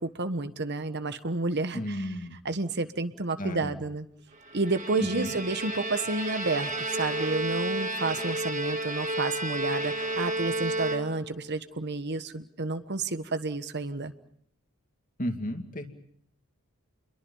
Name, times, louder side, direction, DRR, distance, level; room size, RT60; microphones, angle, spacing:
voice 1, 0.0-2.1 2.4-4.1 4.5-14.1, right 3 dB, 50° right, 10 dB, 1.3 m, -30 dB
voice 2, 1.7-2.3 3.4-3.8 5.0-5.3 15.2-15.9, equal, 35° left, 6 dB, 2.4 m, -33 dB
Bowed string instrument, 4.5-11.5, right 1 dB, 35° right, 2.1 m, -32 dB
30.0 x 22.5 x 5.5 m, 0.65 s
head